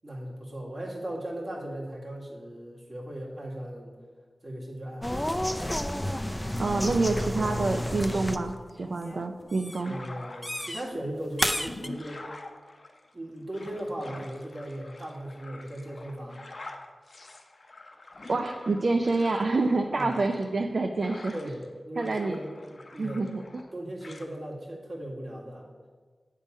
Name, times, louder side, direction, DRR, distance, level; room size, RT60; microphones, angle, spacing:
voice 1, 0.0-4.0 4.4-5.8 9.9-12.2 13.1-16.5 19.9-20.2 21.3-23.2 23.7-25.7, right 1 dB, 50° right, -3 dB, 1.7 m, -38 dB
sound 1, 5.0-8.5 8.8-9.2 9.5-9.8 10.4-10.8 11.4-11.9, left 1 dB, 10° left, 0.4 m, -30 dB
voice 2, 6.6-8.5 8.8-9.9 18.3-21.3 22.0-22.4 23.0-23.6, right 3 dB, 65° right, 4 dB, 0.4 m, -27 dB
sound 2, 9.7-10.9 11.4-21.7 22.0-23.7 24.0-24.3, left 2 dB, 55° left, 0.6 m, -46 dB
8.3 x 3.6 x 5.3 m, 1.4 s
wide cardioid pair, 60°, 0 cm